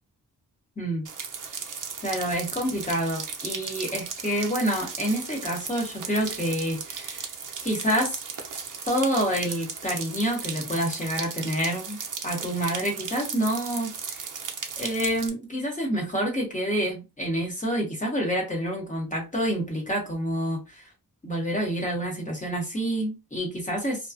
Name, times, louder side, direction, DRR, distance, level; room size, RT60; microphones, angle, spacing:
voice 1, 0.8-1.1 2.0-7.2 7.6-8.2 8.9-12.0 12.2-14.2 14.8-20.9 21.2-24.0, equal, 20° left, 1.0 m, -28 dB
sound 1, 1.0-15.3, right 6 dB, 55° right, 0.5 m, -36 dB
2.4 x 2.3 x 2.4 m
wide cardioid pair, 130°, 38 cm